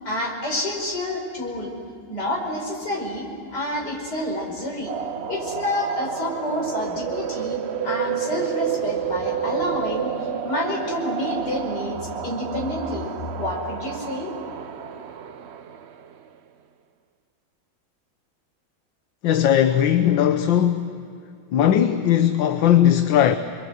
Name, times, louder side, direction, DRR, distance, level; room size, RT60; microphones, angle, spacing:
voice 1, 0.1-1.7 2.1-4.9 5.3-10.1 10.4-13.1 13.4-14.3, left 1 dB, 55° left, 5.7 m, -28 dB
sound 1, 4.9-16.1, right 9 dB, 70° right, 0.6 m, -30 dB
voice 2, 19.2-20.9 21.5-23.4, left 10 dB, 75° left, 1.6 m, -18 dB
28.0 x 23.0 x 8.1 m
omnidirectional pair, 2.1 m